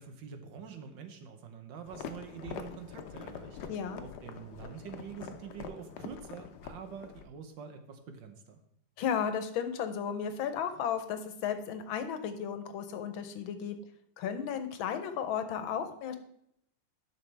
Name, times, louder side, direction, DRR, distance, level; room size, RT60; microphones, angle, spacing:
voice 1, 0.0-3.7 4.0-8.6, right 7 dB, 70° right, 7 dB, 1.6 m, -46 dB
sound 1, 1.9-7.2, left 7 dB, 65° left, 1.2 m, -45 dB
voice 2, 3.7-4.0 9.0-13.8 14.2-16.2, left 8 dB, 85° left, 9 dB, 1.6 m, -34 dB
11.0 x 6.3 x 3.4 m, 0.74 s
omnidirectional pair, 2.2 m